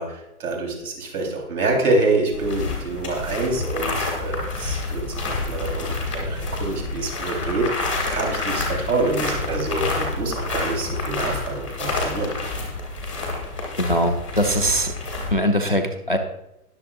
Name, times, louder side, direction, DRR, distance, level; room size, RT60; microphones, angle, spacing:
voice 1, 0.0-7.7 8.1-12.3, right 2 dB, 75° right, 1 dB, 3.9 m, -26 dB
sound 1, 2.3-15.3, left 3 dB, 5° left, 0.8 m, -28 dB
voice 2, 13.8-14.9 15.3-16.2, equal, 35° left, 6 dB, 0.4 m, -21 dB
20.0 x 6.8 x 2.5 m, 0.86 s
hypercardioid pair, 180°, 45 cm